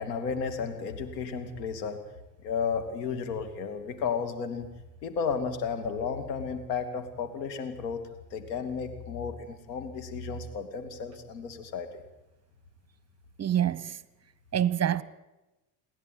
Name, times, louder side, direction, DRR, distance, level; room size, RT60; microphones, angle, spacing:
voice 1, 0.0-2.0 2.4-4.7 5.0-8.0 8.3-11.9, left 5 dB, 80° left, 2.6 m, -33 dB
voice 2, 13.4-14.0 14.5-15.0, right 10 dB, 30° right, 1.0 m, -26 dB
28.5 x 11.0 x 9.4 m
hypercardioid pair, 75°, 48 cm